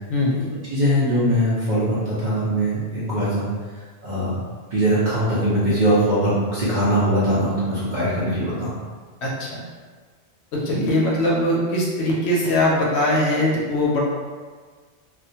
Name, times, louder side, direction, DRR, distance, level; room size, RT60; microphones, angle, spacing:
voice 1, 0.7-3.5 4.0-4.4 4.7-8.7, equal, 55° right, -9 dB, 0.6 m, -21 dB
voice 2, 9.2-9.6 10.5-14.0, left 1 dB, 70° left, -4 dB, 0.8 m, -21 dB
2.3 x 2.1 x 2.6 m, 1.5 s
omnidirectional pair, 1.2 m